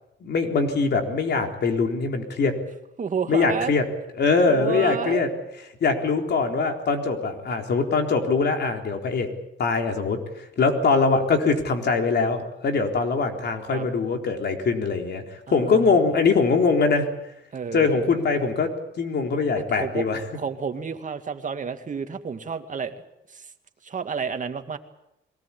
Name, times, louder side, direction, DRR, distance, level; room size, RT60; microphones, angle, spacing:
voice 1, 0.2-2.6 3.3-3.8 4.2-5.3 5.8-9.3 9.6-10.2 10.6-15.2 15.5-17.1 17.7-18.7 19.0-20.2, left 4 dB, 55° left, 4 dB, 4.0 m, -22 dB
voice 2, 3.0-3.7 4.5-5.3 13.7-13.9 15.5-16.0 17.5-17.9 19.8-20.1 20.3-22.9 23.3-23.5 23.8-24.8, right 5 dB, 40° right, 7 dB, 2.3 m, -30 dB
23.0 x 18.5 x 8.6 m, 0.84 s
cardioid pair, 90°, 20 cm